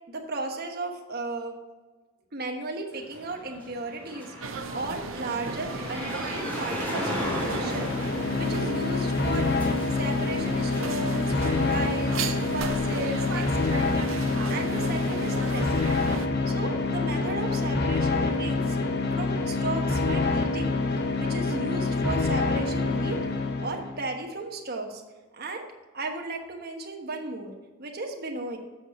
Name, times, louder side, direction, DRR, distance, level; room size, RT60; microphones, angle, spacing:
voice 1, 0.1-1.5 2.3-7.9 8.3-9.5 9.9-14.0 14.5-18.8 19.1-20.8 21.2-23.2 23.6-25.0 25.3-25.6 25.9-27.5 27.8-28.6, right 2 dB, 50° right, 2 dB, 1.2 m, -35 dB
sound 1, 2.9-13.4, left 1 dB, 10° left, 2.6 m, -37 dB
sound 2, 4.4-16.3, right 4 dB, 70° right, 0.7 m, -36 dB
sound 3, 7.1-24.0, left 3 dB, 55° left, 0.9 m, -26 dB
7.6 x 6.5 x 4.3 m, 1.3 s
head